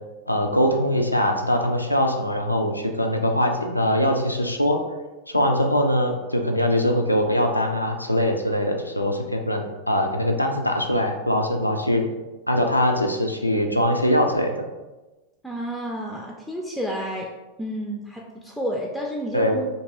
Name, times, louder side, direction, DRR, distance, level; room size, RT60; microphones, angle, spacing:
voice 1, 0.3-4.8 5.3-12.1 12.5-14.7 19.3-19.6, equal, 85° left, 4 dB, 0.3 m, -22 dB
voice 2, 15.4-17.3 17.6-19.7, equal, ahead, -2 dB, 0.3 m, -30 dB
2.8 x 2.6 x 2.6 m, 1.1 s
figure-of-eight pair, 90°, 0 cm